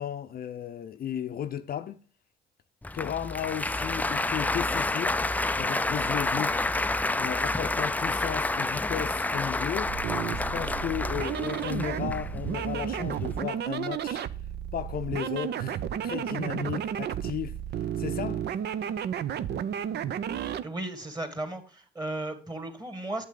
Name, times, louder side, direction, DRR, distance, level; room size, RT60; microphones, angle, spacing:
voice 1, 0.0-2.0 2.9-5.2 5.6-6.5 7.2-9.9 10.3-14.3 14.7-17.6 18.0-18.5, left 9 dB, 50° left, 0.6 m, -34 dB
Applause, 2.8-13.4, left 2 dB, 10° left, 0.3 m, -29 dB
sound 1, 9.8-20.7, right 9 dB, 60° right, 0.6 m, -32 dB
voice 2, 20.6-23.2, right 2 dB, 20° right, 2.4 m, -35 dB
8.2 x 7.8 x 3.7 m
supercardioid pair, 65°, 20 cm